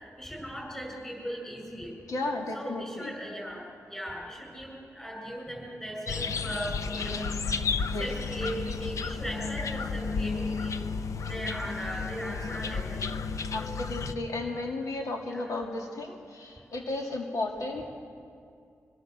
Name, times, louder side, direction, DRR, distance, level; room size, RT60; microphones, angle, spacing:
voice 1, 0.2-1.9 2.5-3.6 3.9-7.3 8.0-10.8 11.3-13.0 14.0-14.2 15.3-15.5, equal, 10° left, -1 dB, 7.3 m, -38 dB
voice 2, 2.1-3.2 7.9-8.1 13.5-18.0, left 2 dB, 85° left, 0 dB, 2.4 m, -34 dB
sound 1, 6.1-14.1, left 5 dB, 70° left, 0.7 m, -32 dB
25.0 x 19.5 x 6.8 m, 2.4 s
wide cardioid pair, 120°, 6 cm